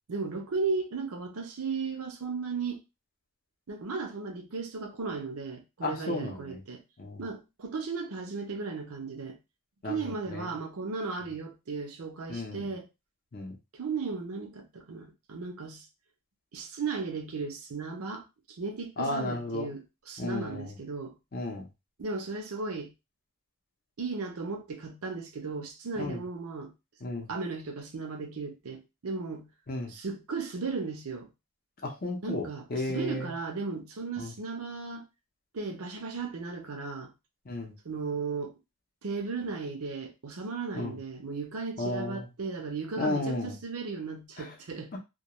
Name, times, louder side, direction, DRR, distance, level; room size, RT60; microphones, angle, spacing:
voice 1, 0.1-2.8 3.7-6.8 7.2-9.4 9.8-12.9 13.7-15.8 16.5-18.3 18.6-21.1 22.0-22.9 24.0-26.7 27.3-29.5 29.9-31.3 32.2-35.0 35.5-37.1 37.8-38.5 39.0-44.9, right 4 dB, 75° right, 0.6 m, -35 dB
voice 2, 5.8-6.6 7.0-7.2 9.8-10.5 12.3-12.7 13.3-13.6 19.0-19.7 20.2-20.7 21.3-21.7 25.9-26.2 27.0-27.3 29.7-29.9 31.8-33.3 34.2-34.3 37.5-37.7 40.7-41.0 41.8-42.3 43.0-43.5 44.4-44.5 44.9-45.0, left 2 dB, 40° left, 0.6 m, -34 dB
2.3 x 2.2 x 2.9 m
head